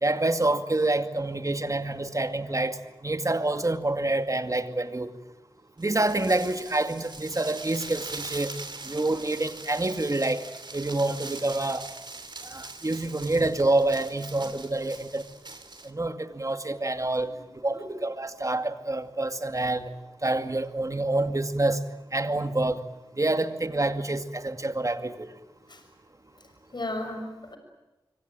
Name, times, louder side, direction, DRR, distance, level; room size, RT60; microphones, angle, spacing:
voice 1, 0.0-5.1 5.8-8.5 8.8-11.9 12.4-15.3 15.8-17.3 17.6-19.9 20.2-21.8 22.1-22.8 23.2-25.3, right 2 dB, 35° right, 9 dB, 2.3 m, -27 dB
sound 1, 5.8-15.9, right 3 dB, 55° right, 3.1 m, -42 dB
voice 2, 17.2-18.0 19.5-19.6 25.7-25.9 26.3-27.6, left 2 dB, 55° left, 5 dB, 6.7 m, -38 dB
25.5 x 25.0 x 9.1 m, 1.0 s
wide cardioid pair, 50°, 9 cm